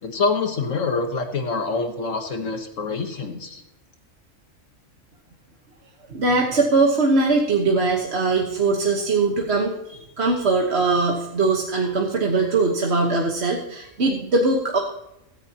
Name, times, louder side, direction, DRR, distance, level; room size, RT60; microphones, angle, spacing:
voice 1, 0.0-3.6, left 4 dB, 70° left, 5 dB, 1.5 m, -26 dB
voice 2, 6.1-14.8, right 3 dB, 55° right, 0 dB, 1.5 m, -21 dB
16.5 x 14.0 x 2.9 m, 0.89 s
omnidirectional pair, 1.4 m